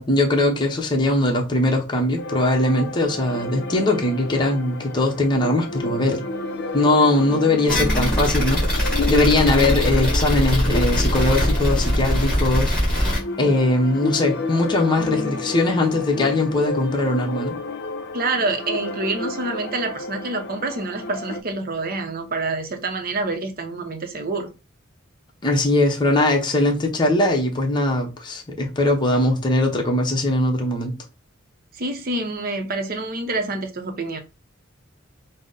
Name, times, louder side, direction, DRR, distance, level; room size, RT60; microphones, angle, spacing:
voice 1, 0.0-6.2 6.7-17.6 25.4-30.9, left 2 dB, 20° left, 0.7 m, -21 dB
sound 1, 2.2-21.4, left 3 dB, 50° left, 0.4 m, -31 dB
sound 2, 7.7-13.2, equal, 5° left, 1.8 m, -21 dB
voice 2, 18.1-24.5 31.7-34.2, right 2 dB, 45° right, 0.6 m, -27 dB
3.9 x 2.0 x 3.8 m
head